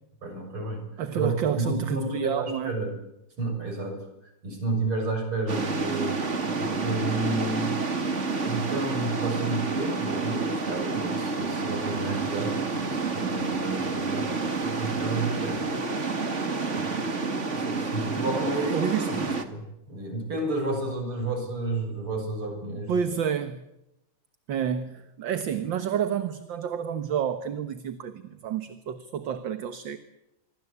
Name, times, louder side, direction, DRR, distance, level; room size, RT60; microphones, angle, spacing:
voice 1, 0.2-2.9 3.4-7.8 8.5-14.3 14.6-15.9 16.8-16.9 17.5-22.9, right 2 dB, 90° right, 4 dB, 7.3 m, -31 dB
voice 2, 1.0-2.7 18.3-19.5 22.9-23.7 24.5-30.0, right 8 dB, 65° right, 10 dB, 2.0 m, -30 dB
sound 1, 5.5-19.4, right 4 dB, 35° right, 2.2 m, -29 dB
26.5 x 23.5 x 8.3 m, 0.88 s
omnidirectional pair, 2.3 m